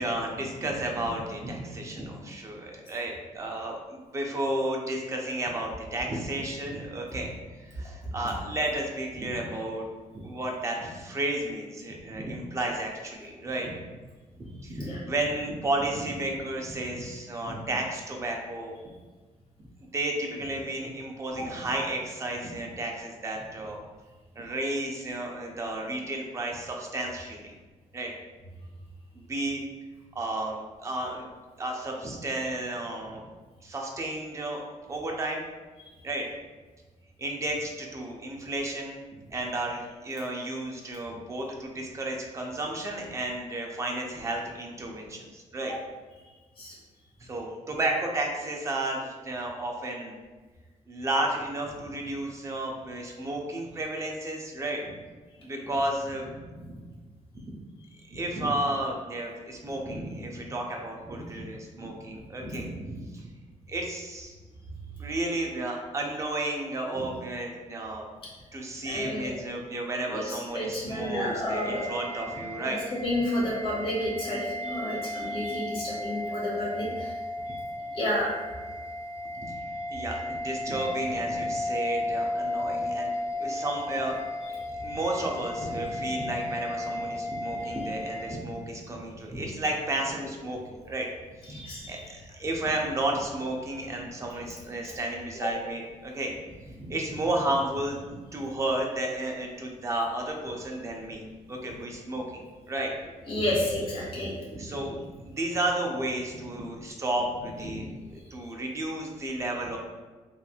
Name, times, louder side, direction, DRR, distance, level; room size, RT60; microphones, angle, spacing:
voice 1, 0.0-9.9 10.1-13.7 14.4-18.8 19.9-23.8 24.4-27.5 27.9-28.1 29.1-29.6 30.1-31.3 31.6-33.2 33.6-34.6 34.9-35.4 36.0-36.3 37.2-39.0 39.3-45.8 47.2-50.2 50.9-54.9 55.4-56.9 57.3-57.6 58.1-63.3 63.7-64.3 65.0-68.0 68.5-72.8 79.5-91.1 91.4-96.4 96.8-98.0 98.3-101.2 101.5-102.4 102.7-102.9 104.5-109.8, right 1 dB, 25° right, 0 dB, 0.5 m, -32 dB
voice 2, 68.8-69.3 70.1-71.8 72.9-77.1 77.9-78.3 91.5-91.9 95.4-95.5 103.3-104.3, left 1 dB, 45° left, -5 dB, 1.2 m, -30 dB
sound 1, 71.5-88.4, left 1 dB, 70° left, 1.3 m, -34 dB
3.2 x 2.9 x 2.3 m, 1.3 s
cardioid pair, 150°, 13 cm